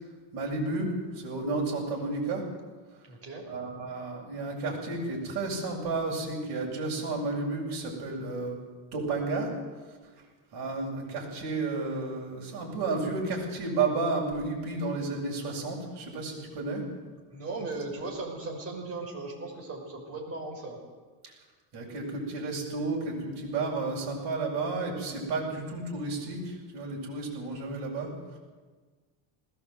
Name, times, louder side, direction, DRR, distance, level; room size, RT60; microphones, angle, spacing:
voice 1, 0.3-2.4 3.5-8.6 8.9-9.5 10.5-16.8 21.7-28.1, right 3 dB, 60° right, -2 dB, 7.5 m, -32 dB
voice 2, 3.0-3.5 17.3-20.8, right 3 dB, 30° right, 0 dB, 5.7 m, -37 dB
20.0 x 17.5 x 8.1 m, 1.4 s
cardioid pair, 165°, 45 cm